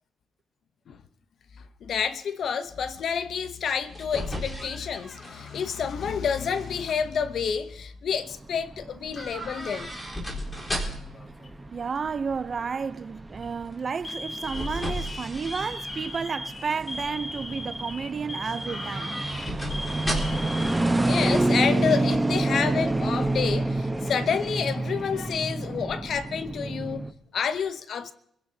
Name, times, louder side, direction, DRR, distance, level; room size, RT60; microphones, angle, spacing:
voice 1, 1.6-9.9 20.2-28.1, left 7 dB, 60° left, 0.8 m, -29 dB
sound 1, 3.8-6.0 6.4-6.9 9.1-11.2 14.0-16.2 16.6-17.1 18.5-20.6 20.9-21.0, equal, 15° left, 3.9 m, -35 dB
sound 2, 8.2-27.1, right 2 dB, 15° right, 1.0 m, -29 dB
Alarm, 11.1-11.7 12.5-12.8 13.3-13.5 14.0-21.6 21.9-22.0 22.9-23.6, left 2 dB, 30° left, 1.1 m, -38 dB
voice 2, 11.7-19.2, right 5 dB, 40° right, 0.6 m, -32 dB
28.5 x 16.0 x 2.8 m
cardioid pair, 90°, 0 cm